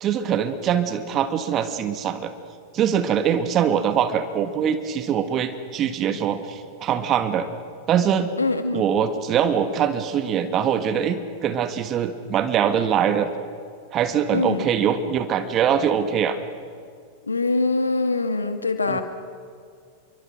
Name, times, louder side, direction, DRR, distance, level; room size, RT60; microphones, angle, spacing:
voice 1, 0.0-2.3 2.7-7.5 7.9-8.3 8.7-13.3 13.9-16.4 18.9-19.0, right 8 dB, 30° right, 9 dB, 1.7 m, -23 dB
voice 2, 8.4-8.9 14.3-14.7 17.3-19.0, left 3 dB, 80° left, 8 dB, 1.9 m, -23 dB
29.5 x 24.0 x 6.1 m, 2.1 s
figure-of-eight pair, 90°, 0 cm